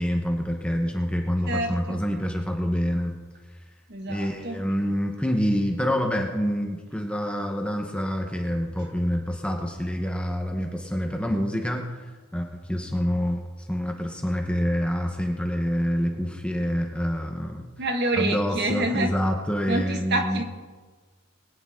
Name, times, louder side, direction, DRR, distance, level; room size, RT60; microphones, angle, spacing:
voice 1, 0.0-3.2 4.1-11.8 12.3-17.7 18.2-20.4, equal, 5° left, 2 dB, 1.0 m, -27 dB
voice 2, 3.9-4.6 17.8-19.1 19.7-20.4, right 2 dB, 50° right, 4 dB, 1.5 m, -27 dB
21.5 x 10.0 x 3.7 m, 1.4 s
head